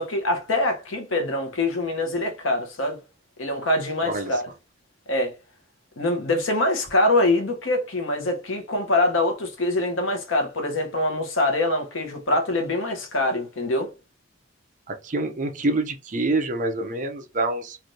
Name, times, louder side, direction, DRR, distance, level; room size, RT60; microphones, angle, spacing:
voice 1, 0.0-3.0 3.4-4.5 5.1-5.3 6.0-13.9, left 1 dB, 80° left, 1.0 m, -24 dB
voice 2, 4.0-4.3 14.9-17.8, right 2 dB, 40° right, 0.6 m, -26 dB
3.3 x 2.5 x 2.7 m
head